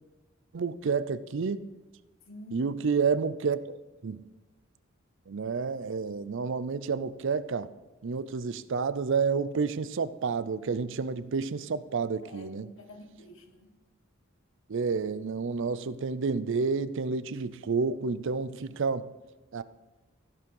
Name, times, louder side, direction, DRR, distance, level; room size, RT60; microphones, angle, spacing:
voice 1, 0.5-1.6 2.5-3.8 4.0-4.2 5.3-7.7 8.0-12.7 14.7-19.1 19.5-19.6, right 5 dB, 65° right, 0.5 m, -30 dB
voice 2, 2.2-2.7 12.2-13.8, left 1 dB, 70° left, 1.6 m, -48 dB
15.5 x 5.6 x 5.4 m
head